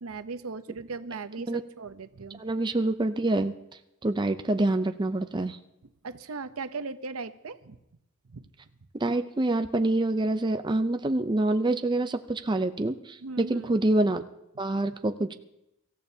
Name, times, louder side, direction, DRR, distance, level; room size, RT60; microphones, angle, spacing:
voice 1, 0.0-2.4 6.0-7.8 8.3-8.5 13.2-13.8 14.9-15.0, right 4 dB, 85° right, 11 dB, 0.7 m, -38 dB
voice 2, 2.4-3.5 4.0-5.6 8.9-14.2 14.6-15.3, right 2 dB, 20° right, 8 dB, 0.5 m, -26 dB
24.5 x 14.0 x 2.8 m, 0.88 s
head